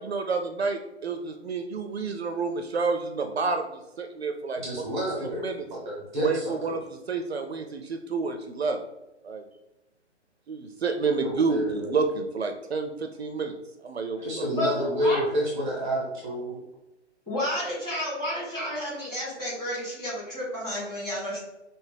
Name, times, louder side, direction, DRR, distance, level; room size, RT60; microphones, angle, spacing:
voice 1, 0.0-3.7 4.0-4.6 5.2-5.7 6.2-6.8 7.1-8.8 9.2-9.4 10.5-13.5 13.8-14.6, right 4 dB, 60° right, 6 dB, 0.5 m, -29 dB
voice 2, 4.6-6.8 11.2-11.9 14.2-16.6, equal, 10° right, -4 dB, 0.5 m, -29 dB
voice 3, 14.5-15.2 17.3-21.4, left 1 dB, 10° left, -8 dB, 1.4 m, -31 dB
5.7 x 2.0 x 3.3 m, 0.95 s
figure-of-eight pair, 130°, 36 cm